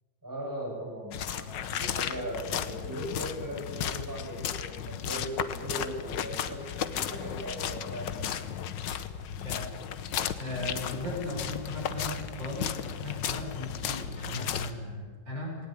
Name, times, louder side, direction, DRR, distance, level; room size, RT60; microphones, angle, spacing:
voice 1, 0.2-8.4, equal, 10° right, -1 dB, 5.9 m, -38 dB
sound 1, 1.1-14.7, left 9 dB, 75° left, 1.7 m, -34 dB
voice 2, 10.4-15.6, left 1 dB, 85° right, -1 dB, 6.6 m, -37 dB
19.5 x 18.5 x 10.0 m, 1.5 s
omnidirectional pair, 2.0 m